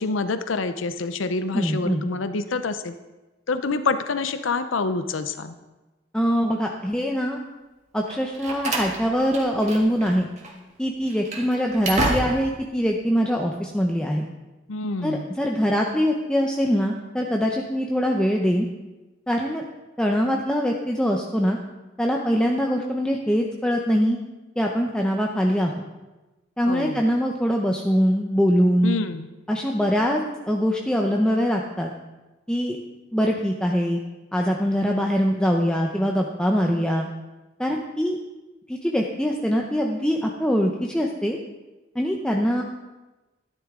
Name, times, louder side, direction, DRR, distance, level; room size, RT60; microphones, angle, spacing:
voice 1, 0.0-2.9 3.5-5.5 14.7-15.2 26.7-27.0 28.8-29.3, left 3 dB, 85° left, 11 dB, 0.6 m, -27 dB
voice 2, 1.5-2.1 6.1-7.4 7.9-10.3 10.8-14.3 15.0-18.7 19.3-19.6 20.0-21.6 22.0-24.2 24.6-25.8 26.6-29.0 29.5-30.2 30.5-31.9 32.5-32.8 33.1-34.0 34.3-37.1 37.6-38.2 38.7-41.4 41.9-42.6, equal, 5° left, 0 dB, 0.7 m, -23 dB
Slam, 8.1-10.1 10.4-10.5 11.0-12.6, right 1 dB, 35° right, 1.8 m, -29 dB
13.0 x 11.0 x 3.7 m, 1.1 s
head